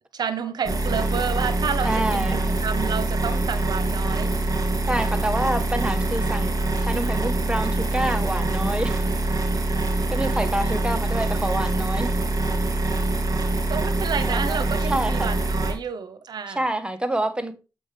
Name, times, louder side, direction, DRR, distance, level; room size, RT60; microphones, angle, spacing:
voice 1, 0.1-4.3 9.7-9.9 13.7-16.7, right 6 dB, 85° right, 0.9 m, -30 dB
sound 1, 0.6-15.7, right 2 dB, 60° right, 2.8 m, -24 dB
voice 2, 1.8-2.5 4.9-6.5 6.8-9.1 10.1-12.1 14.3-15.3 16.5-17.5, right 1 dB, 15° right, 1.4 m, -27 dB
7.9 x 5.3 x 3.4 m
cardioid pair, 50°, 7 cm